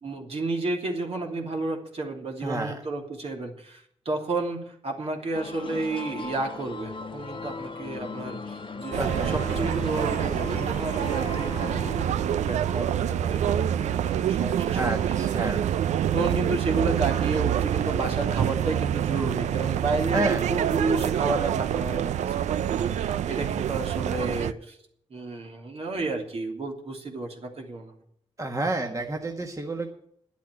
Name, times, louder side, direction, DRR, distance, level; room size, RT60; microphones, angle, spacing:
voice 1, 0.0-15.6 16.1-20.2 20.5-24.8 25.1-27.9, right 3 dB, 60° right, 1 dB, 2.9 m, -31 dB
voice 2, 2.4-2.8 9.0-9.4 14.7-15.6 20.1-20.5 28.4-29.9, right 2 dB, 30° right, 2 dB, 1.6 m, -29 dB
sound 1, 5.3-12.0, left 4 dB, 50° left, 1.1 m, -37 dB
sound 2, 8.9-24.5, right 10 dB, 85° right, 0.5 m, -26 dB
10.5 x 8.3 x 9.9 m, 0.69 s
cardioid pair, 65°, 12 cm